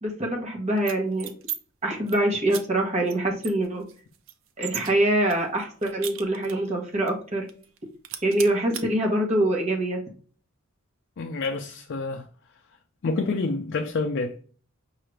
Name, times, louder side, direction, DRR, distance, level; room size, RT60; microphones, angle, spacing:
voice 1, 0.0-1.3 1.8-3.8 4.6-7.5 8.2-10.0, right 1 dB, 30° right, 1.0 m, -24 dB
sound 1, 0.8-1.6 1.9-2.2 2.5-2.6 3.1-3.2 3.4-4.9 5.3-6.7 7.1-7.2 7.5-7.8 8.0-8.8, right 10 dB, 65° right, 0.5 m, -36 dB
voice 2, 11.2-12.3 13.0-14.4, left 3 dB, 55° left, 0.4 m, -28 dB
5.5 x 2.4 x 3.2 m
head